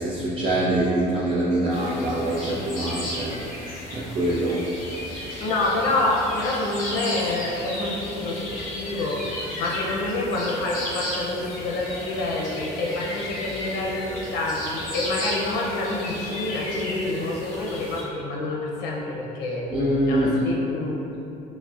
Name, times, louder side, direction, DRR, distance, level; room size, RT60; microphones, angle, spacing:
voice 1, 0.0-5.5 19.7-20.4, right 1 dB, 35° right, -7 dB, 0.5 m, -25 dB
sound 1, 1.7-18.0, left 1 dB, 55° left, 1.2 m, -34 dB
voice 2, 5.4-9.2 9.6-19.6 20.1-21.0, left 2 dB, 85° left, -3 dB, 0.6 m, -27 dB
6.1 x 2.1 x 2.3 m, 2.9 s
cardioid pair, 110°, 17 cm